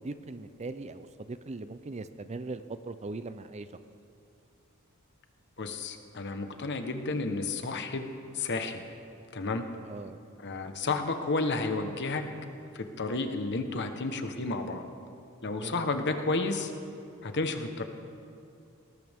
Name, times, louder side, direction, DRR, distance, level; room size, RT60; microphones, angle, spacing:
voice 1, 0.0-3.7 9.8-10.2 15.6-16.0, right 3 dB, 30° right, 11 dB, 0.5 m, -40 dB
voice 2, 5.6-8.1 8.3-8.8 9.3-9.7 10.4-12.2 12.7-14.8 15.4-16.7 17.2-17.8, left 3 dB, 55° left, 6 dB, 1.2 m, -31 dB
21.0 x 18.5 x 3.6 m, 2.6 s
head